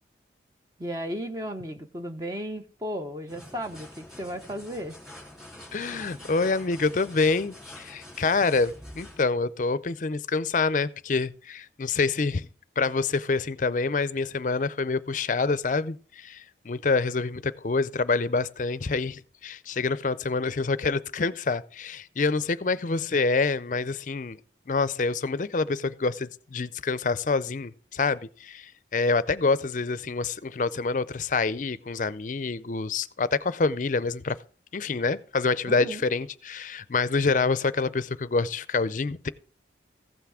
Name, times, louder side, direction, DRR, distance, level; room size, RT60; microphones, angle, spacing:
voice 1, 0.8-5.0 35.7-36.0, equal, 20° right, 0.7 m, -35 dB
sound 1, 3.3-9.2, left 1 dB, 5° right, 2.6 m, -46 dB
voice 2, 5.7-12.5 12.8-24.4 24.7-34.4 34.7-39.3, left 4 dB, 45° left, 0.5 m, -27 dB
15.0 x 5.9 x 4.8 m
head